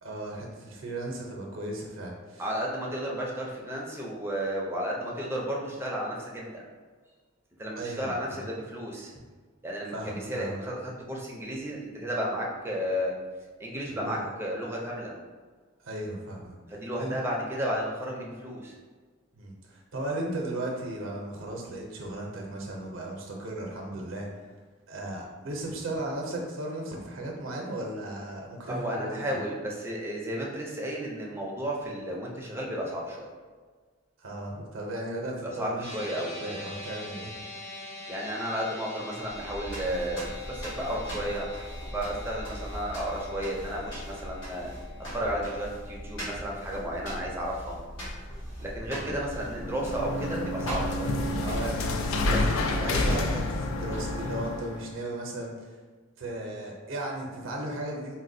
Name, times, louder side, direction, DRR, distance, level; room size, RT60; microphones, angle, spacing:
voice 1, 0.0-2.4 7.8-8.4 9.9-10.6 13.9-14.3 15.8-17.2 19.3-24.3 24.9-29.2 34.2-35.9 36.4-37.3 48.9-49.1 51.4-55.7 56.2-58.1, right 1 dB, 70° right, 0 dB, 0.6 m, -36 dB
voice 2, 2.4-6.6 7.6-9.1 9.6-13.2 13.6-15.1 16.7-18.7 28.7-33.3 35.4-36.5 38.1-41.5 41.9-44.7 45.1-47.8 48.6-51.1 52.3-53.2, equal, 10° right, -3 dB, 0.5 m, -33 dB
sound 1, 35.8-48.3, left 2 dB, 40° left, 1.0 m, -45 dB
sound 2, 39.2-54.4, equal, 65° left, 1.3 m, -39 dB
sound 3, 49.4-54.9, left 2 dB, 85° left, 0.3 m, -29 dB
4.0 x 2.1 x 2.6 m, 1.5 s
head